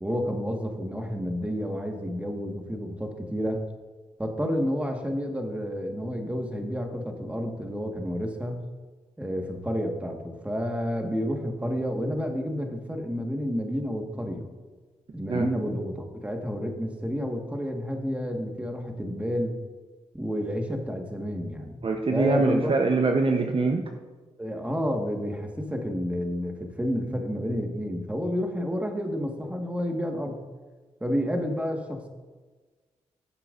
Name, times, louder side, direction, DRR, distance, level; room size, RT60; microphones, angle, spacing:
voice 1, 0.0-3.6 4.2-8.6 9.2-14.5 15.1-19.5 20.1-21.8 22.1-22.7 24.4-30.4 31.0-32.1, equal, 10° right, 3 dB, 1.6 m, -30 dB
voice 2, 21.8-23.8, right 3 dB, 45° right, 4 dB, 0.9 m, -24 dB
15.5 x 7.4 x 2.6 m, 1.3 s
supercardioid pair, 55°, 13 cm